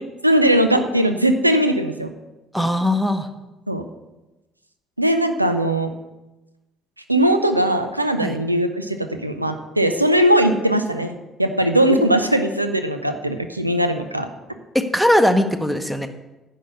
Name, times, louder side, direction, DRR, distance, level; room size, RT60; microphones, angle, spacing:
voice 1, 0.2-2.1 3.7-3.8 5.0-5.9 7.1-14.3, right 1 dB, 90° right, 8 dB, 0.5 m, -19 dB
voice 2, 2.5-3.3 8.2-8.4 14.7-16.1, left 1 dB, ahead, 8 dB, 1.1 m, -19 dB
10.0 x 5.6 x 8.0 m, 1.0 s
figure-of-eight pair, 50°, 0 cm